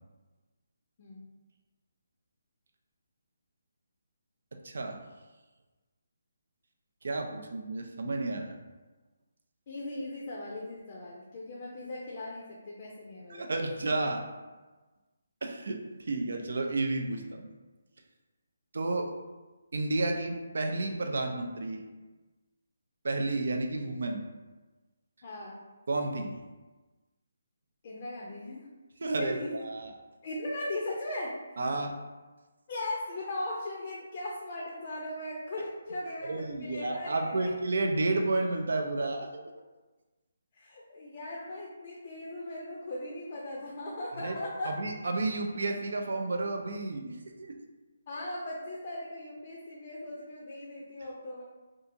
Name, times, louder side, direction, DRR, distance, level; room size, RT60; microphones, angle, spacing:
voice 1, 4.6-5.0 7.0-8.6 13.3-14.2 15.4-15.8 16.1-17.5 18.7-19.1 19.7-21.8 23.0-24.2 25.9-26.3 29.0-29.9 31.6-31.9 36.2-39.5 44.2-44.4 44.6-47.1 47.4-47.6, right 2 dB, 70° right, 3 dB, 0.4 m, -31 dB
voice 2, 9.7-13.6 25.2-25.6 27.8-28.6 29.0-29.5 30.2-31.3 32.7-37.5 40.5-44.7 48.1-51.4, left 1 dB, 40° left, -4 dB, 0.5 m, -38 dB
2.7 x 2.4 x 2.6 m, 1.2 s
figure-of-eight pair, 155°, 0 cm